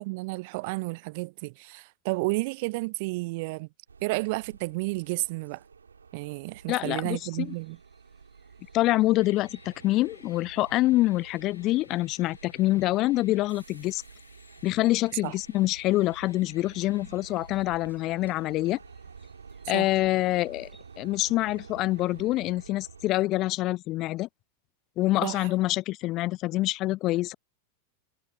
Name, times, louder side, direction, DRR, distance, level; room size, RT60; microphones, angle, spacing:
voice 1, 0.0-3.7 4.0-5.6 6.1-7.8 15.2-15.3 19.7-19.9 25.2-25.5, right 26 dB, 50° right, 0.4 m, -31 dB
sound 1, 3.9-23.1, right 5 dB, 75° right, 4.9 m, -50 dB
voice 2, 6.7-7.5 8.7-14.0 14.6-18.8 19.7-20.7 21.0-24.3 25.0-27.3, left 17 dB, 35° left, 0.3 m, -26 dB
sound 2, 6.9-22.3, right 1 dB, 5° right, 7.5 m, -68 dB
sound 3, 9.2-21.4, left 5 dB, 75° left, 1.1 m, -57 dB
figure-of-eight pair, 90°, 0 cm